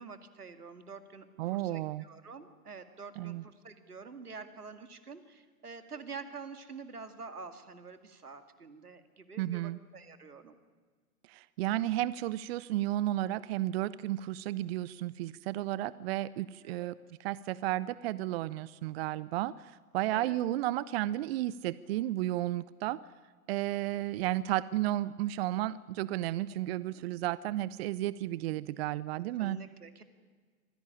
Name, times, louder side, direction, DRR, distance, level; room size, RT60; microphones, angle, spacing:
voice 1, 0.0-10.5 16.6-17.0 20.1-20.4 26.9-27.0 29.4-30.0, right 4 dB, 85° right, 9 dB, 2.3 m, -47 dB
voice 2, 1.4-2.1 3.2-3.4 9.4-9.8 11.3-23.0 23.5-29.6, right 15 dB, 45° right, 19 dB, 0.6 m, -33 dB
25.0 x 16.5 x 9.9 m, 1.5 s
figure-of-eight pair, 105°, 44 cm